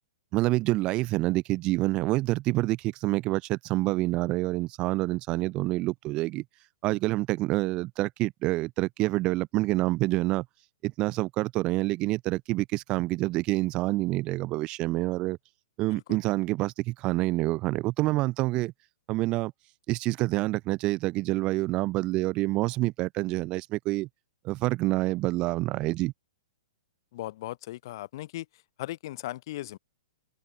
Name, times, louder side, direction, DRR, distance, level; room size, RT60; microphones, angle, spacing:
voice 1, 0.3-6.4 6.8-10.4 10.8-15.4 15.8-18.7 19.1-19.5 19.9-24.1 24.4-26.1, right 19 dB, 35° right, 1.2 m, -27 dB
voice 2, 27.1-28.5 28.8-29.8, left 16 dB, 50° left, 2.6 m, -37 dB
open air
figure-of-eight pair, 115°, 3 cm